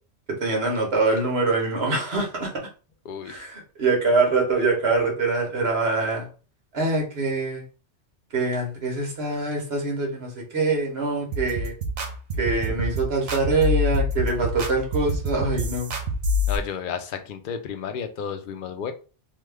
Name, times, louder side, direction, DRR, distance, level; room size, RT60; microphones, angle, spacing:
voice 1, 0.4-2.5 3.2-6.3 6.7-7.6 8.3-11.7 12.4-15.9, right 3 dB, 65° right, 1.3 m, -24 dB
voice 2, 3.0-3.4 16.5-18.9, left 7 dB, 60° left, 0.6 m, -32 dB
sound 1, 11.3-16.6, left 1 dB, 85° right, 1.0 m, -26 dB
3.0 x 2.3 x 3.4 m
omnidirectional pair, 1.2 m